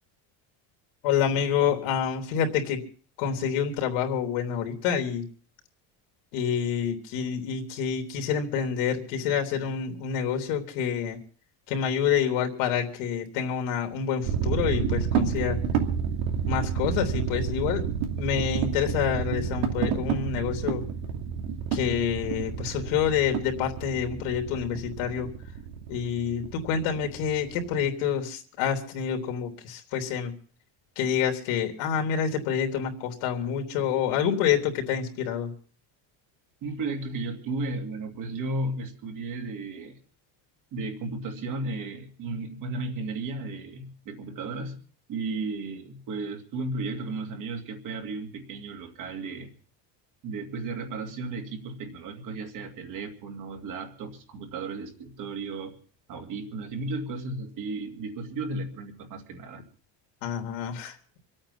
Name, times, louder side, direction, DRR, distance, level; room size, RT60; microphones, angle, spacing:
voice 1, 1.0-2.8 3.2-5.2 6.3-11.2 11.7-15.6 16.5-17.8 18.2-20.8 21.7-25.3 25.9-30.3 31.0-35.5 60.2-61.0, left 8 dB, 75° left, 4 dB, 3.6 m, -27 dB
sound 1, 14.2-27.9, right 7 dB, 80° right, 2.8 m, -30 dB
voice 2, 36.6-40.0 40.7-44.8 45.1-49.5 50.2-55.8 56.1-59.6, right 3 dB, 40° right, 4 dB, 2.5 m, -34 dB
26.5 x 8.9 x 5.7 m, 0.43 s
cardioid pair, 175°, 47 cm